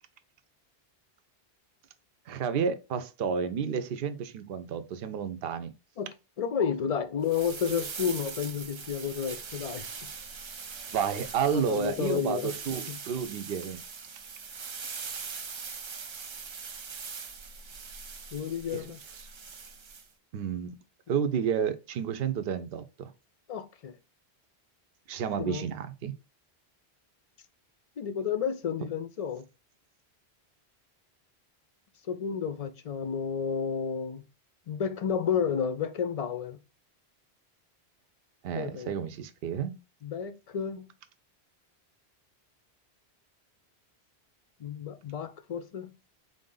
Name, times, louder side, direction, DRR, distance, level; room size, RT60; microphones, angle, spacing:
voice 1, 2.3-5.7 10.9-13.8 18.7-18.9 20.3-20.8 21.1-23.1 25.1-26.1 38.4-39.7, right 7 dB, 70° right, 0.8 m, -31 dB
voice 2, 6.4-9.9 11.5-12.5 12.9-13.0 18.3-19.0 23.5-23.9 25.4-25.6 28.0-29.4 32.1-34.2 34.7-36.6 38.5-38.9 40.0-40.9 44.6-45.9, left 7 dB, 50° left, 0.4 m, -31 dB
sound 1, 7.2-20.1, right 5 dB, 45° right, 0.3 m, -41 dB
4.1 x 2.6 x 3.7 m
omnidirectional pair, 1.1 m